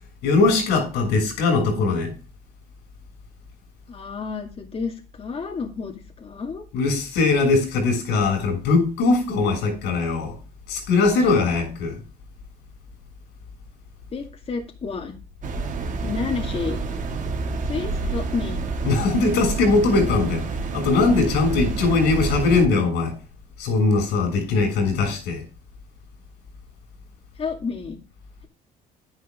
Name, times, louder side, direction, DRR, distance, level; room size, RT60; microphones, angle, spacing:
voice 1, 0.2-2.1 6.7-10.4 10.7-12.0 18.8-20.5 20.7-23.1 23.6-25.4, left 3 dB, 85° left, 7.0 m, -20 dB
voice 2, 3.9-6.6 14.1-15.2 16.0-16.8 17.6-18.6 27.4-28.0, left 5 dB, 35° left, 2.2 m, -30 dB
sound 1, 15.4-22.7, right 3 dB, 50° right, 2.4 m, -28 dB
11.0 x 10.5 x 3.7 m
cardioid pair, 110°, 17 cm